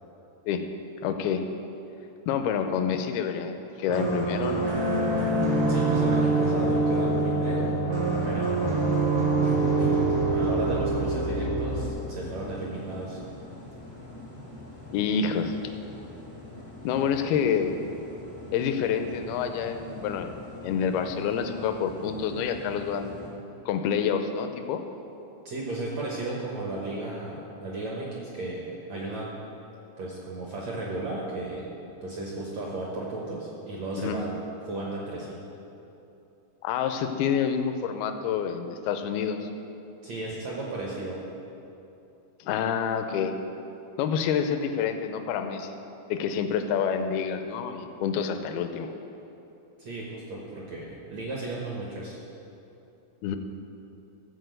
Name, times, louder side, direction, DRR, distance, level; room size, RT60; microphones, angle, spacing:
voice 1, 1.0-1.4 2.3-4.7 14.9-15.6 16.8-17.7 18.5-20.3 20.6-23.2 23.7-24.8 34.0-34.2 36.6-39.4 42.4-43.3 44.0-45.8 46.1-48.9 53.2-53.4, left 7 dB, 80° left, 7 dB, 2.4 m, -28 dB
sound 1, 3.9-11.9, right 2 dB, 85° right, 1.2 m, -25 dB
voice 2, 5.7-7.8 8.2-9.0 9.4-10.0 10.3-13.2 25.4-29.3 30.0-31.7 32.0-35.4 40.0-41.2 49.8-52.2, right 2 dB, 65° right, -3 dB, 1.7 m, -34 dB
sound 2, 11.7-23.3, left 2 dB, 20° left, 0.4 m, -44 dB
14.5 x 4.9 x 7.8 m, 2.9 s
omnidirectional pair, 4.8 m